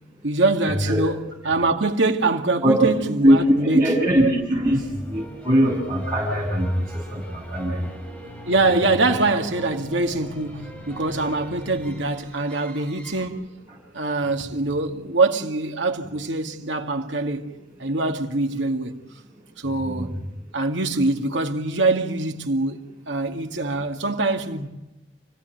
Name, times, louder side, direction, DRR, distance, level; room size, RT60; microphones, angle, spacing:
voice 1, 0.2-3.9 8.5-13.5 13.9-17.5 17.8-19.0 19.6-20.2 20.5-22.8 23.1-24.7, right 2 dB, 80° right, 2.2 m, -24 dB
voice 2, 2.6-2.9 3.2-7.8 19.6-20.1, right 1 dB, 15° right, 7.2 m, -21 dB
sound 1, 3.4-13.2, right 1 dB, 5° left, 5.5 m, -41 dB
29.0 x 17.0 x 9.3 m
head